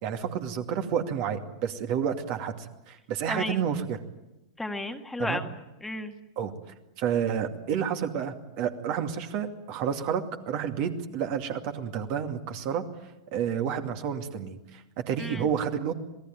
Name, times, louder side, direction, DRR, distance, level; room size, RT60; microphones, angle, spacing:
voice 1, 0.0-4.0 5.2-5.4 6.4-6.5 7.0-12.8 13.3-15.9, right 8 dB, 45° right, 6 dB, 2.4 m, -30 dB
voice 2, 4.6-6.1 15.2-15.5, left 2 dB, 5° left, 5 dB, 1.8 m, -33 dB
27.0 x 19.0 x 9.3 m, 0.97 s
figure-of-eight pair, 95°, 2 cm